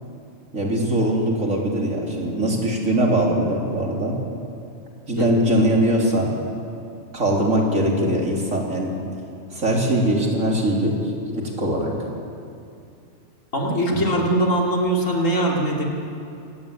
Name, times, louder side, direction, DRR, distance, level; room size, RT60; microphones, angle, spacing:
voice 1, 0.5-4.2 5.1-6.3 7.1-9.0 9.5-10.9 11.3-11.9 13.9-14.0, right 1 dB, 75° right, -1 dB, 4.0 m, -21 dB
voice 2, 13.5-15.8, right 1 dB, 70° left, -2 dB, 3.9 m, -21 dB
24.5 x 18.0 x 8.9 m, 2.5 s
omnidirectional pair, 1.4 m